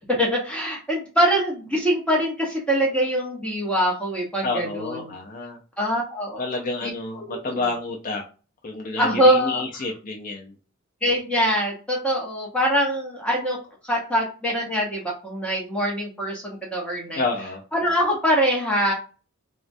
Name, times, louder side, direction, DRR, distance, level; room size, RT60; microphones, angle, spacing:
voice 1, 0.2-5.0 5.8-6.4 6.8-6.9 7.3-7.6 9.0-9.6 11.0-13.6 13.8-17.2 17.7-18.9, equal, 5° left, -2 dB, 0.8 m, -23 dB
voice 2, 4.4-5.6 6.4-8.2 8.6-10.5 17.1-17.6, left 3 dB, 40° left, 0 dB, 0.5 m, -29 dB
3.4 x 2.1 x 2.6 m, 0.35 s
head